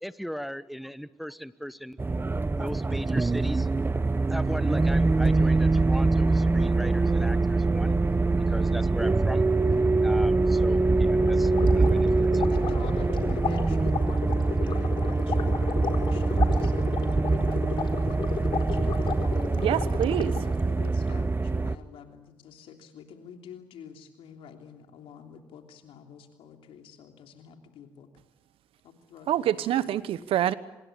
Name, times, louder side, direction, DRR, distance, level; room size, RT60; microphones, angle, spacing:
voice 1, 0.0-2.0 2.5-3.7 4.2-7.9 8.4-9.4 10.0-12.5, equal, ahead, 15 dB, 1.1 m, -38 dB
sound 1, 2.0-21.8, right 3 dB, 25° right, 1.1 m, -24 dB
sound 2, 11.2-20.6, left 6 dB, 60° left, 4.1 m, -34 dB
voice 2, 12.5-19.1 20.4-28.1 28.8-29.9, left 7 dB, 75° left, 4 dB, 3.2 m, -47 dB
voice 3, 19.5-20.3 29.3-30.5, right 11 dB, 75° right, 16 dB, 1.1 m, -26 dB
25.0 x 21.5 x 8.6 m, 1.0 s
supercardioid pair, 50°, 9 cm